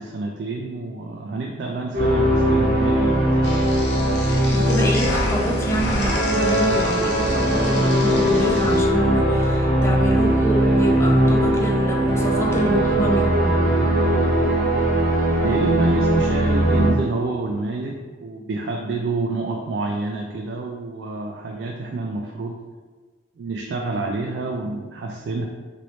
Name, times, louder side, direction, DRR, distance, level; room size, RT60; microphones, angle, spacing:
voice 1, 0.0-3.7 15.3-22.6 23.4-25.5, right 3 dB, 75° right, 1 dB, 0.3 m, -28 dB
sound 1, 1.9-16.9, right 1 dB, 55° right, 0.8 m, -20 dB
sound 2, 3.4-8.8, left 1 dB, 70° left, 0.6 m, -30 dB
voice 2, 4.5-13.6, right 1 dB, 15° left, 0 dB, 0.4 m, -26 dB
3.0 x 2.7 x 3.0 m, 1.4 s
head